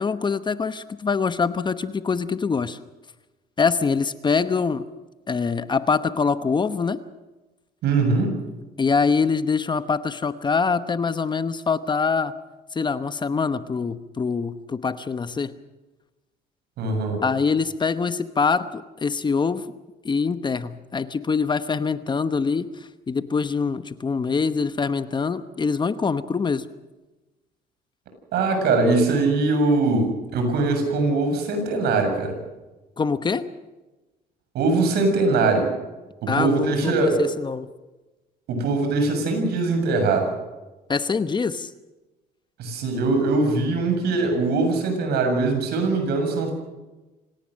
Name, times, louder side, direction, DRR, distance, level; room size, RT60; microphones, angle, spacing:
voice 1, 0.0-2.8 3.6-4.9 5.3-7.0 8.8-12.3 12.7-15.5 17.2-19.7 20.0-26.6 33.0-33.5 36.3-37.7 40.9-41.7, left 5 dB, 25° left, 12 dB, 1.0 m, -24 dB
voice 2, 7.8-8.4 16.8-17.2 28.3-32.4 34.5-35.7 36.2-37.2 38.5-40.3 42.6-46.5, right 3 dB, 75° right, 5 dB, 7.2 m, -22 dB
26.0 x 18.0 x 6.5 m, 1.1 s
cardioid pair, 110°, 17 cm